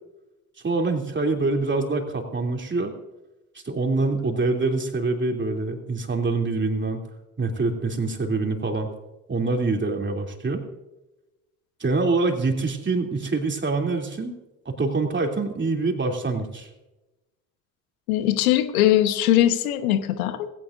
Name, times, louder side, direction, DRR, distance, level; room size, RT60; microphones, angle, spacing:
voice 1, 0.6-2.9 3.6-7.0 7.4-8.9 9.3-10.6 11.8-14.4 14.6-16.7, right 3 dB, 25° right, 2 dB, 3.1 m, -25 dB
voice 2, 18.1-20.5, left 12 dB, 75° left, 10 dB, 1.3 m, -21 dB
19.5 x 16.5 x 2.6 m, 1.0 s
hypercardioid pair, 55°, 42 cm